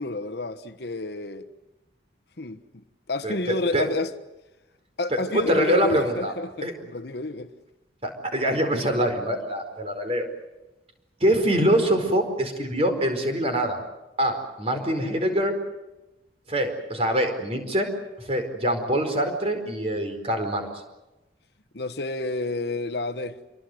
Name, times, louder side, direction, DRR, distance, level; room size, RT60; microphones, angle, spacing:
voice 1, 0.0-1.5 2.4-2.6 3.1-4.1 5.0-7.5 21.7-23.4, left 2 dB, 60° left, 1.2 m, -30 dB
voice 2, 5.1-6.3 6.6-6.7 8.0-10.3 11.2-13.8 14.2-15.5 16.5-17.9 18.2-20.7, equal, 30° right, 4.7 m, -24 dB
27.0 x 23.5 x 7.9 m
head